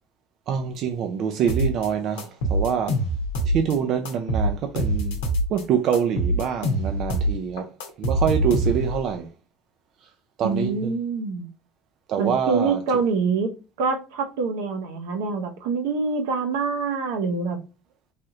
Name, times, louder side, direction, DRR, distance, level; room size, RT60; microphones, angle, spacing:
voice 1, 0.5-3.0 3.4-5.2 5.5-7.7 8.0-9.3 10.4-10.9 12.1-12.8, right 8 dB, 55° right, 0.4 m, -25 dB
sound 1, 1.5-1.9 2.2-3.7 4.0-5.6 5.9-9.0, right 1 dB, 90° left, 0.8 m, -24 dB
voice 2, 10.4-11.5 12.2-13.5 13.8-17.6, right 4 dB, 80° right, 0.7 m, -25 dB
3.3 x 2.7 x 2.3 m
supercardioid pair, 100°, 0 cm